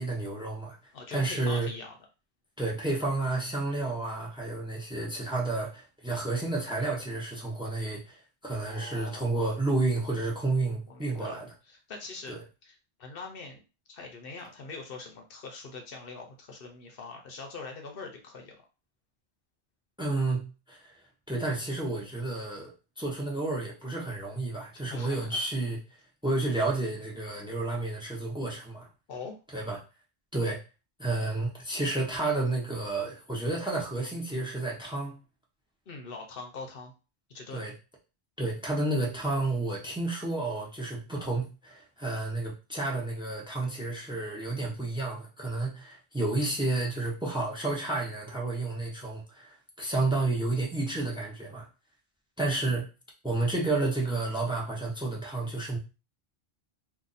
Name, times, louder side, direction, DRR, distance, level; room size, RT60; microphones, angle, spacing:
voice 1, 0.0-0.8 1.1-1.7 2.6-11.5 12.3-12.4 20.0-20.9 21.3-22.7 23.0-25.8 26.2-28.9 29.5-29.8 30.3-30.6 31.0-35.2 37.5-37.7 38.4-51.7 52.4-52.9 53.2-55.8, right 2 dB, 5° right, -2 dB, 0.8 m, -31 dB
voice 2, 0.9-2.0 8.6-9.4 10.9-13.6 13.9-18.5 24.9-25.5 29.1-29.4 35.9-36.9 37.3-37.6 41.2-41.3, left 3 dB, 65° left, 2 dB, 0.9 m, -43 dB
2.6 x 2.5 x 3.9 m, 0.31 s
omnidirectional pair, 1.0 m